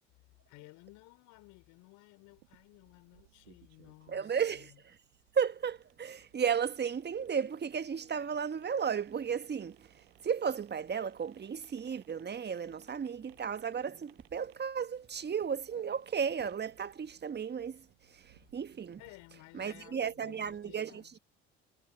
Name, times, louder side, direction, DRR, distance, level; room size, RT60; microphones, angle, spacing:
voice 1, 0.5-4.8 19.0-21.2, left 23 dB, 65° left, 4.0 m, -56 dB
sound 1, 2.3-19.2, right 19 dB, 75° right, 7.3 m, -66 dB
voice 2, 4.1-4.7 5.3-9.9 10.2-17.9 18.1-19.0 19.5-21.2, right 7 dB, 30° right, 1.5 m, -34 dB
figure-of-eight pair, 50°, 32 cm